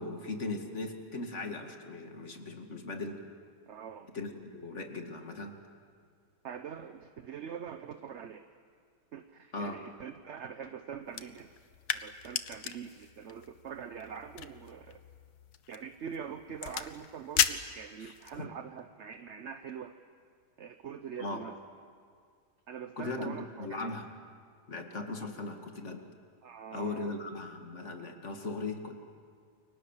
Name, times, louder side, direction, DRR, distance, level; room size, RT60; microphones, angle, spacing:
voice 1, 0.0-3.2 4.1-5.6 9.5-9.8 18.0-18.5 21.2-21.4 23.0-24.1 24.7-26.0 26.7-29.0, left 2 dB, 40° left, 4 dB, 2.4 m, -38 dB
voice 2, 3.7-4.1 6.4-8.4 9.1-11.5 11.9-15.0 15.7-19.9 20.6-21.6 22.7-23.9 26.4-27.2, right 7 dB, 50° right, 8 dB, 1.0 m, -44 dB
sound 1, 11.1-18.4, left 9 dB, 65° left, 1.4 m, -36 dB
30.0 x 23.5 x 7.3 m, 2.1 s
omnidirectional pair, 1.9 m